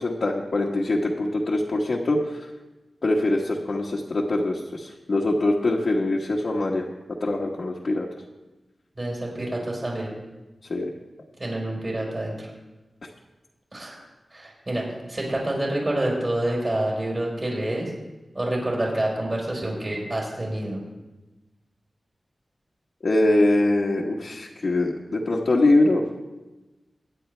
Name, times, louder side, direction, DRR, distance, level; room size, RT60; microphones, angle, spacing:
voice 1, 0.0-2.5 3.0-6.8 7.2-8.1 10.7-10.9 23.0-26.0, left 2 dB, 60° left, -4 dB, 1.3 m, -23 dB
voice 2, 9.0-10.1 11.4-12.5 13.7-14.0 14.3-17.9 18.3-20.8, right 1 dB, 35° right, -4 dB, 4.3 m, -27 dB
23.0 x 9.6 x 3.3 m, 1.1 s
wide cardioid pair, 110°, 0 cm